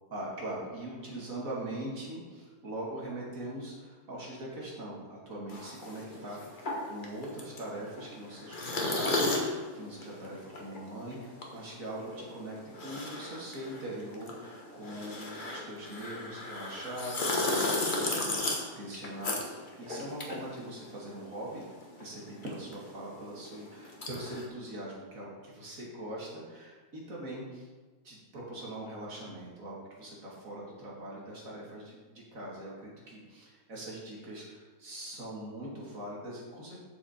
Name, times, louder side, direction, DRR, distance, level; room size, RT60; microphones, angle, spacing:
voice 1, 0.1-6.6 6.9-21.7 22.0-27.6 28.0-36.8, right 1 dB, 45° right, -4 dB, 2.2 m, -42 dB
sound 1, 5.5-21.3 21.5-24.4, left 2 dB, 35° left, 0.9 m, -35 dB
7.5 x 6.9 x 4.2 m, 1.3 s
omnidirectional pair, 2.2 m